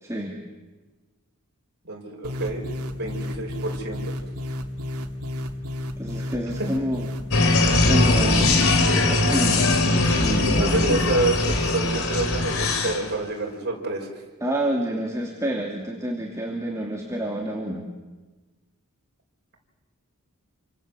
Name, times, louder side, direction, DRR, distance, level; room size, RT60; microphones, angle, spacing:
voice 1, 0.0-0.4 6.0-7.1 7.8-9.8 10.2-10.8 14.4-17.9, right 1 dB, 15° right, 0 dB, 2.7 m, -28 dB
voice 2, 1.8-2.6 2.9-4.2 10.4-14.1, right 2 dB, 50° right, 0 dB, 6.2 m, -28 dB
sound 1, 2.2-7.4, left 1 dB, 80° right, 2.6 m, -32 dB
sound 2, 7.3-13.1, left 2 dB, 65° left, 3.7 m, -20 dB
28.5 x 25.5 x 7.8 m, 1.2 s
head